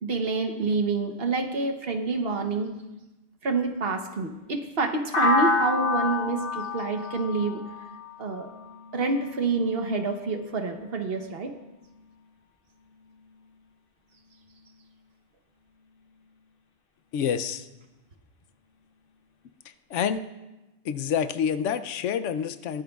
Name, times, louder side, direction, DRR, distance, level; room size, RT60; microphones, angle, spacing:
voice 1, 0.0-2.7 3.4-7.6 8.2-8.5 8.9-11.5, right 3 dB, 55° right, 5 dB, 1.1 m, -27 dB
sound 1, 5.1-9.0, left 3 dB, 50° left, 1.0 m, -27 dB
voice 2, 17.1-17.7 19.6-20.2 20.8-22.8, left 8 dB, 75° left, 11 dB, 0.9 m, -28 dB
22.0 x 9.1 x 2.4 m, 1.0 s
omnidirectional pair, 1.3 m